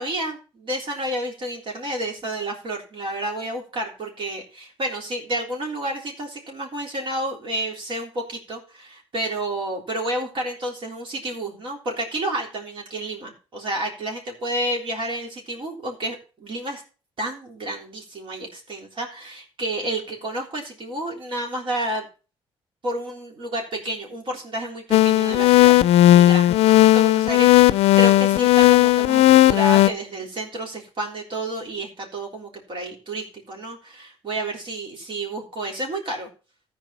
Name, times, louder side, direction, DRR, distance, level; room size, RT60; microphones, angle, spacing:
voice 1, 0.0-16.8 17.2-22.1 22.8-27.5 28.0-36.3, right 1 dB, 55° right, 0 dB, 3.6 m, -30 dB
sound 1, 24.9-29.9, left 15 dB, 80° left, 0.5 m, -15 dB
13.5 x 5.0 x 5.6 m, 0.36 s
cardioid pair, 80°, 10 cm